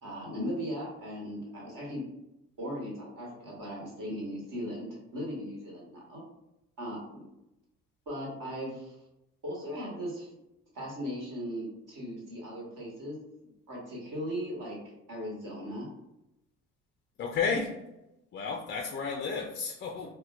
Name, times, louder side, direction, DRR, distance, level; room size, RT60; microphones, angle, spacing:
voice 1, 0.0-2.0 2.6-6.2 6.8-7.3 8.1-9.0 9.4-10.3 10.7-13.2 13.4-15.9, equal, 45° right, -3 dB, 1.4 m, -38 dB
voice 2, 17.2-17.8 18.3-20.1, left 5 dB, 25° left, 0 dB, 0.4 m, -32 dB
4.2 x 2.1 x 2.4 m, 0.89 s
figure-of-eight pair, 50°, 44 cm